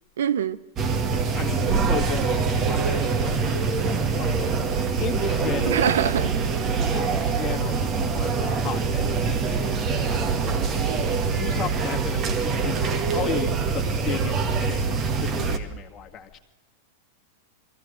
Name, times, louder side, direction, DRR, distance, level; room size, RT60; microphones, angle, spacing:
voice 1, 0.2-0.6 5.7-6.3, right 9 dB, 75° right, 0.7 m, -23 dB
sound 1, 0.8-15.6, right 5 dB, 35° right, 1.7 m, -24 dB
voice 2, 1.1-6.1 6.6-16.4, left 9 dB, 30° left, 1.9 m, -36 dB
22.0 x 15.0 x 7.9 m
hypercardioid pair, 110°, 0 cm